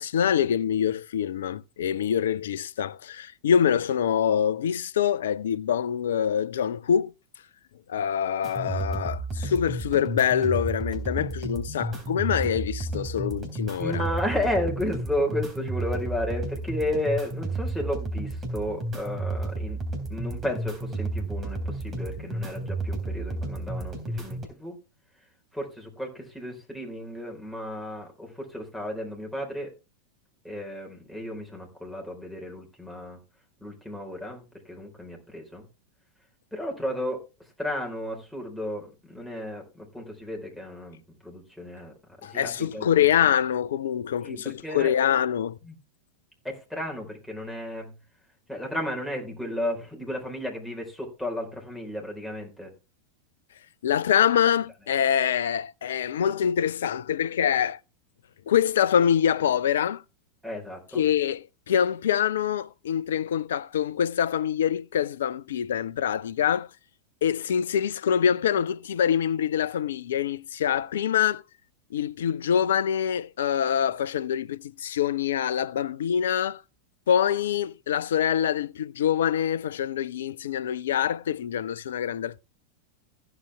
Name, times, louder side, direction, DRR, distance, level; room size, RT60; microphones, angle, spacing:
voice 1, 0.0-7.1 7.9-14.1 42.2-45.6 53.8-57.8 58.5-60.0 60.9-66.7 67.2-71.4 71.9-76.6 77.1-82.4, left 9 dB, 60° left, 0.5 m, -25 dB
sound 1, 8.4-24.4, right 2 dB, 25° right, 3.4 m, -32 dB
voice 2, 13.8-19.8 20.1-24.8 25.5-29.7 30.4-33.2 33.6-35.6 36.5-37.2 37.6-41.9 42.2-43.1 44.2-44.9 45.6-45.8 46.4-47.9 48.5-52.7 60.4-61.1, left 1 dB, ahead, 4.2 m, -33 dB
15.0 x 7.9 x 3.4 m
figure-of-eight pair, 90°, 0 cm